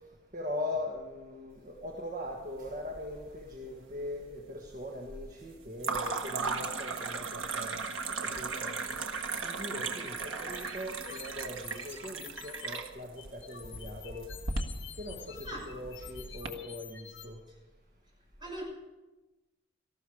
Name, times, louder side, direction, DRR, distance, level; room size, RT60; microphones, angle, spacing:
voice 1, 0.3-7.8 8.2-14.3 15.0-17.4, left 1 dB, 40° right, 0 dB, 1.7 m, -41 dB
sound 1, 2.7-3.4 3.7-4.3 5.8-16.5, right 4 dB, 85° right, 1.4 m, -37 dB
sound 2, 10.3-12.8 13.2-17.3, left 9 dB, 65° left, 1.8 m, -49 dB
voice 2, 15.4-15.6 17.5-17.6 18.4-18.6, right 1 dB, 25° right, -2 dB, 6.1 m, -40 dB
18.0 x 14.0 x 5.0 m, 1.1 s
head